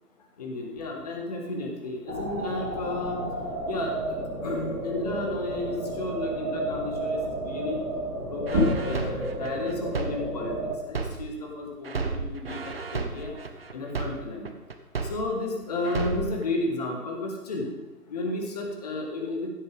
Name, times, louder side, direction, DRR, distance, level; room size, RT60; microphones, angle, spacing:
voice 1, 0.4-3.3 3.7-4.0 4.4-7.8 8.3-13.4 13.7-14.5 15.0-17.7 18.1-19.5, left 2 dB, 25° left, 2 dB, 1.4 m, -33 dB
sound 1, 2.1-10.7, right 1 dB, 70° right, 2.5 m, -32 dB
sound 2, 8.4-13.6, left 1 dB, 5° right, 0.9 m, -33 dB
sound 3, 8.5-11.5 11.8-15.5 15.8-16.4, right 4 dB, 40° right, 0.8 m, -33 dB
15.0 x 8.2 x 3.4 m, 1.2 s
figure-of-eight pair, 145°, 48 cm